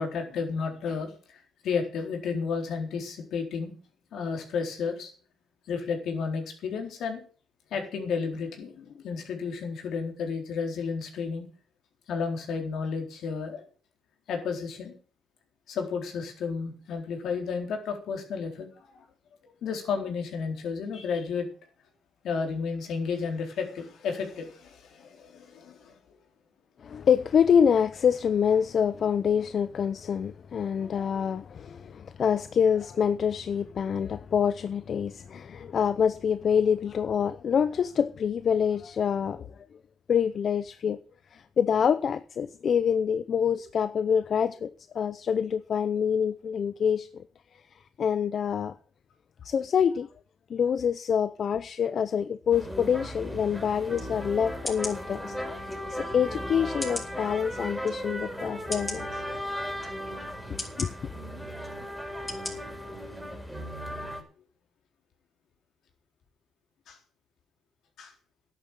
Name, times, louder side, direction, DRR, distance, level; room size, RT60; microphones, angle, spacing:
voice 1, 0.0-3.7 4.1-5.1 5.7-7.2 7.7-11.4 12.1-13.7 14.3-15.0 15.7-18.7 18.9-19.1 19.6-21.5 22.2-26.0 63.2-63.3 66.9-67.0 68.0-68.1, left 5 dB, 75° left, 4.0 m, -32 dB
voice 2, 26.8-39.5 40.1-41.0 41.3-47.2 48.0-48.7 49.4-50.1 50.5-55.3 55.6-59.2 60.8-60.9, left 7 dB, 55° left, 0.7 m, -26 dB
sound 1, 52.5-64.2, equal, ahead, 4.4 m, -36 dB
sound 2, 53.9-54.1 54.6-55.0 55.7-55.8 56.8-57.1 57.8-57.9 58.7-59.0 59.8-59.9 60.6-60.9 61.6-61.7 62.3-62.5 63.0-63.1, left 2 dB, 20° left, 4.6 m, -35 dB
11.0 x 9.3 x 8.0 m
cardioid pair, 90°, 0 cm